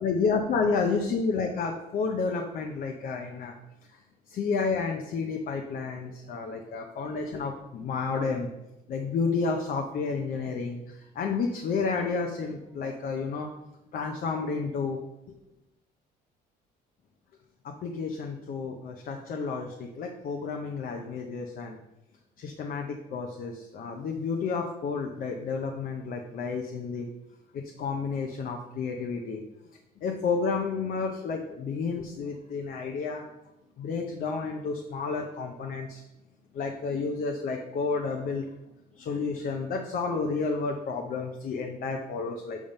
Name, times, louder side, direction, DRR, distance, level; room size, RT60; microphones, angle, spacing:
voice 1, 0.0-3.5 4.3-8.5 8.9-13.5 13.9-15.0 17.8-21.8 22.4-27.1 27.5-29.4 30.0-33.2 33.8-36.0 36.5-38.5 39.0-42.6, left 4 dB, 55° left, 2 dB, 0.8 m, -31 dB
7.2 x 3.6 x 5.3 m, 0.91 s
cardioid pair, 110°, 17 cm